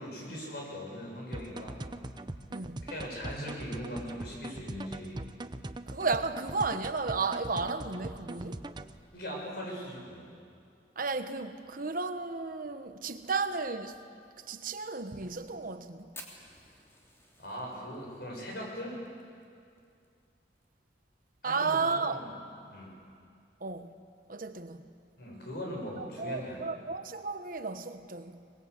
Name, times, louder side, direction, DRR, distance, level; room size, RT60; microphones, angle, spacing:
voice 1, 0.0-1.8 2.8-5.2 9.1-10.3 17.4-19.0 21.4-22.4 22.7-22.9 25.2-26.7, equal, 60° left, 7.4 m, -40 dB
sound 1, 1.3-9.0, right 2 dB, 25° right, 0.7 m, -41 dB
voice 2, 2.5-2.9 5.9-8.7 11.0-13.9 14.5-16.1 21.4-22.2 23.6-23.9 24.3-24.9 26.0-28.4, right 4 dB, 50° right, 1.2 m, -33 dB
Fire, 16.1-20.7 20.9-21.0 21.3-21.4 21.7-22.2 22.7-22.8 23.8-24.0, left 1 dB, 15° left, 3.0 m, -52 dB
24.0 x 20.5 x 8.4 m
head